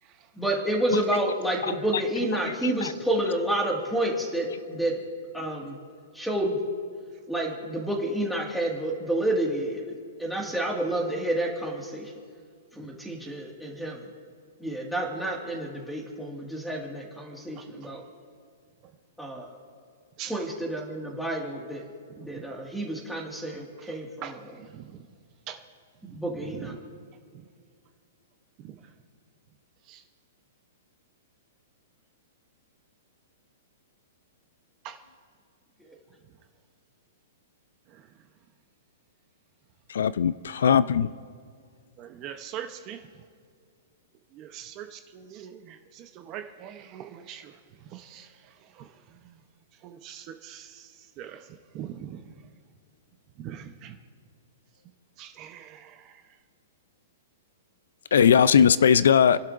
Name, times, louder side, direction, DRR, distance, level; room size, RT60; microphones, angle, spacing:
voice 1, 0.4-4.9 5.3-5.8 6.1-6.6 7.3-12.1 12.7-14.0 14.6-18.0 19.2-19.5 20.3-21.8 22.2-24.1 26.1-26.7 35.8-36.0, right 1 dB, ahead, 1.9 m, -29 dB
voice 2, 17.2-17.9 20.2-20.5 22.2-22.5 23.5-25.1 25.5-25.6 26.1-27.0 27.3-27.4 28.6-28.9 29.8-30.0 34.8-35.0 37.9-38.2 40.6-40.7 42.0-43.2 44.3-49.4 49.7-52.5 53.4-54.0 55.2-56.4, right 9 dB, 25° right, 0.8 m, -43 dB
voice 3, 39.9-41.1 58.1-59.4, left 8 dB, 80° left, 0.4 m, -19 dB
29.5 x 11.5 x 2.6 m
hypercardioid pair, 165°, 0 cm